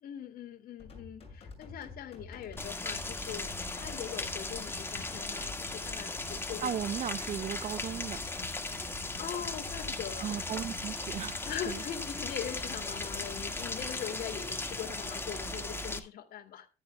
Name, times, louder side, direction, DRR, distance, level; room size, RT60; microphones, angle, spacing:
voice 1, 0.0-6.7 8.8-10.3 11.5-16.7, left 9 dB, 60° left, 2.5 m, -42 dB
sound 1, 0.8-13.9, left 4 dB, 35° left, 7.2 m, -49 dB
Rain, 2.6-16.0, left 2 dB, 15° left, 1.8 m, -37 dB
voice 2, 6.6-8.2 10.2-11.8, right 9 dB, 45° right, 0.6 m, -36 dB
14.0 x 12.0 x 2.3 m
cardioid pair, 110°, 17 cm